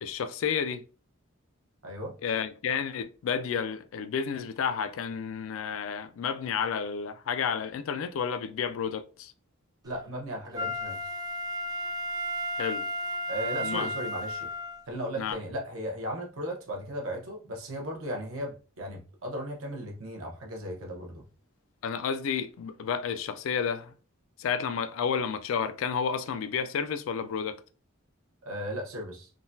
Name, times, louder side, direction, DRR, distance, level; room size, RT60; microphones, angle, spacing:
voice 1, 0.0-0.8 2.2-9.3 12.6-12.9 13.6-13.9 15.2-15.4 21.8-23.9 24.4-27.6, left 6 dB, 70° left, 0.3 m, -31 dB
voice 2, 1.8-2.1 9.8-11.0 13.3-14.5 14.9-21.2 28.4-29.3, equal, 85° right, 0.9 m, -36 dB
Wind instrument woodwind instrument, 10.5-14.8 15.3-15.4, equal, 20° right, 0.3 m, -33 dB
3.7 x 2.3 x 2.6 m
head